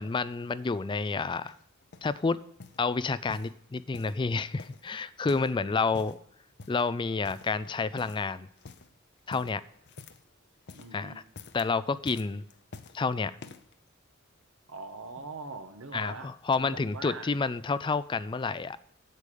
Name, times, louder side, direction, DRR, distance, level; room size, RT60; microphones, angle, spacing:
voice 1, 0.0-1.6 2.0-2.4 2.8-6.2 6.7-8.5 9.3-9.6 10.9-11.1 11.5-12.4 12.9-13.4 15.9-18.8, left 4 dB, 25° left, 16 dB, 0.4 m, -29 dB
sound 1, 1.4-2.2 2.6-2.9 3.3-4.2 4.6-5.6 5.8-6.2 6.6-6.9 7.2-7.7 8.0-8.3 8.6-8.9 9.3-10.3 10.6-11.0 11.3-11.7 12.0-13.0 13.4-13.7 14.4-14.5, left 4 dB, 55° left, 0.7 m, -48 dB
voice 2, 10.7-11.2 14.7-17.3, right 4 dB, 85° right, 7 dB, 1.3 m, -43 dB
8.3 x 8.3 x 5.3 m, 0.73 s
head